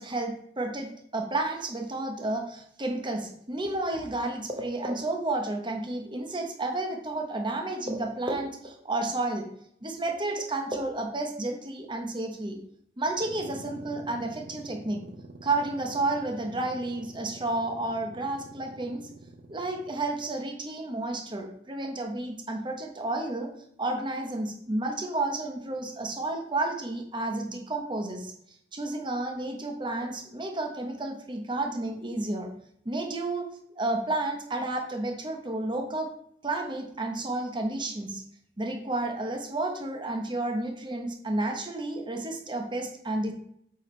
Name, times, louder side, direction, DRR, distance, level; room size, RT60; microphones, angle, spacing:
voice 1, 0.0-9.5 9.8-12.6 13.0-15.0 15.4-19.1 19.5-23.5 23.8-28.3 28.7-32.5 32.8-33.5 33.8-36.1 36.4-38.2 38.6-43.3, right 2 dB, 25° right, 3 dB, 1.2 m, -31 dB
sound 1, 13.1-20.4, right 2 dB, 60° right, 0.9 m, -47 dB
8.2 x 6.1 x 3.3 m, 0.69 s
head